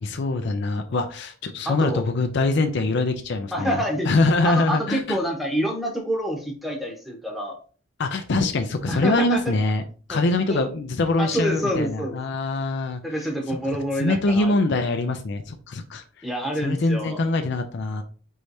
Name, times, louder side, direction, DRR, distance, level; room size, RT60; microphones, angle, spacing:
voice 1, 0.0-5.2 8.0-9.8 10.1-13.0 14.0-16.0 16.6-18.0, left 2 dB, 60° left, 7 dB, 0.5 m, -23 dB
voice 2, 1.6-2.0 3.5-4.1 4.4-7.5 8.9-9.5 10.1-10.2 10.5-10.6 11.2-12.2 13.0-14.5 16.2-17.2, equal, ahead, 0 dB, 1.0 m, -27 dB
4.6 x 3.2 x 2.7 m, 0.38 s
head